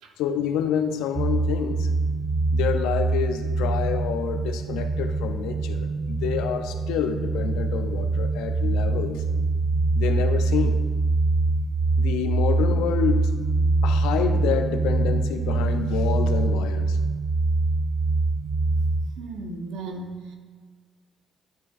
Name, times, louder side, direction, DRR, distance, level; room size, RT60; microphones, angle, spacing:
voice 1, 0.2-1.9 2.5-9.2 9.9-10.8 12.0-13.3 13.8-17.0, left 8 dB, 85° left, 7 dB, 0.5 m, -28 dB
sound 1, 1.1-19.1, right 3 dB, 55° right, 0.4 m, -24 dB
voice 2, 19.1-20.3, right 2 dB, 80° right, 4 dB, 0.9 m, -36 dB
10.5 x 4.6 x 2.4 m, 1.5 s
supercardioid pair, 65°, 0 cm